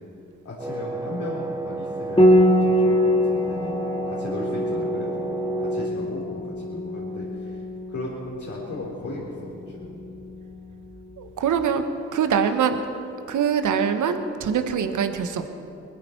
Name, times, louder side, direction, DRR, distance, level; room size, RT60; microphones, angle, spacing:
voice 1, 0.4-5.3 5.6-7.6 7.9-10.0, left 2 dB, 60° left, -6 dB, 3.8 m, -36 dB
Wind instrument woodwind instrument, 0.6-5.9, right 2 dB, 10° right, 0.7 m, -32 dB
Piano, 2.2-11.5, equal, 15° left, 2.3 m, -24 dB
voice 2, 11.2-11.8 12.1-12.8 13.3-15.5, right 7 dB, 70° right, 8 dB, 1.3 m, -23 dB
21.5 x 14.0 x 4.6 m, 2.7 s
hypercardioid pair, 40°, 32 cm